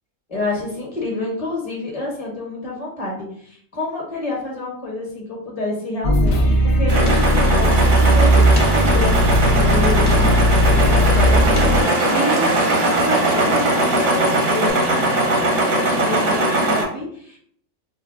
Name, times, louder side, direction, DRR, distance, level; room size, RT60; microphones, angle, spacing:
voice 1, 0.3-17.4, left 2 dB, 30° left, -1 dB, 0.9 m, -28 dB
sound 1, 6.0-11.8, equal, 60° left, 0.9 m, -16 dB
sound 2, 6.9-16.8, right 2 dB, 85° right, 1.2 m, -20 dB
Stream / Liquid, 7.7-14.7, right 3 dB, 60° right, 0.5 m, -33 dB
4.5 x 2.2 x 2.4 m, 0.64 s
omnidirectional pair, 1.4 m